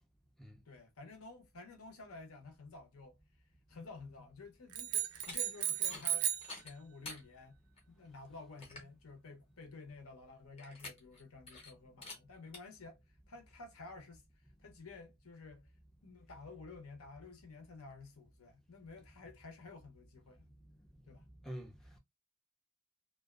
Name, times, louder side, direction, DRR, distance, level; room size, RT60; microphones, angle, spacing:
voice 1, 0.7-3.2 3.7-7.6 7.9-14.2 14.6-15.6 16.0-20.5 21.0-21.2, left 3 dB, 75° left, 0.7 m, -52 dB
sound 1, 4.7-6.6, right 10 dB, 75° right, 0.4 m, -35 dB
sound 2, 5.1-5.4 5.8-6.1 6.4-7.2 7.8-7.9 8.3-8.4 8.6-8.9 10.6-11.2 11.5-11.7 12.0-12.2 12.5-12.6, left 3 dB, 25° left, 0.7 m, -48 dB
voice 2, 21.4-22.0, equal, ahead, 0.4 m, -46 dB
2.5 x 2.2 x 2.3 m
head